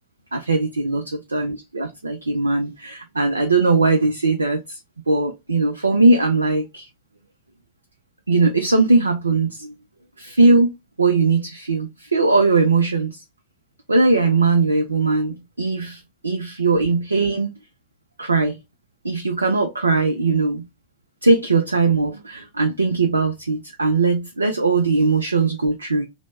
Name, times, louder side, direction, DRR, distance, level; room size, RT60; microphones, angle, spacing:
voice 1, 0.3-1.0 1.3-4.8 5.1-6.9 8.3-9.7 10.2-13.2 13.9-17.5 18.2-18.6 19.0-20.6 21.2-26.0, right 3 dB, 80° right, 0.3 m, -19 dB
3.0 x 2.0 x 3.2 m
figure-of-eight pair, 90°, 0 cm